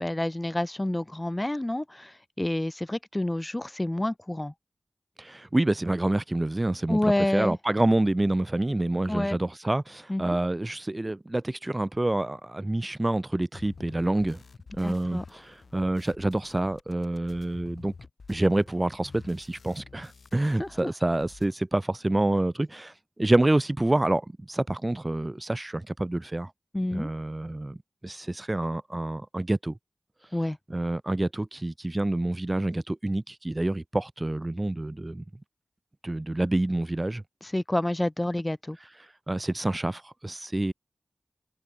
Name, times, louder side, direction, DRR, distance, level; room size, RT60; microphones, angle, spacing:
voice 1, 0.0-4.5 6.9-7.6 9.1-9.4 10.1-10.4 14.8-15.2 20.6-20.9 26.7-27.1 30.3-30.6 37.4-38.8, left 1 dB, 20° left, 4.7 m, -28 dB
voice 2, 5.2-14.4 14.7-17.9 18.3-22.9 23.2-26.5 26.9-27.8 28.0-29.8 30.7-35.2 36.0-37.2 39.3-40.7, right 1 dB, 30° right, 5.7 m, -27 dB
sound 1, 13.5-20.8 21.1-21.5, left 4 dB, 80° left, 6.2 m, -50 dB
cardioid pair, 45°, 0 cm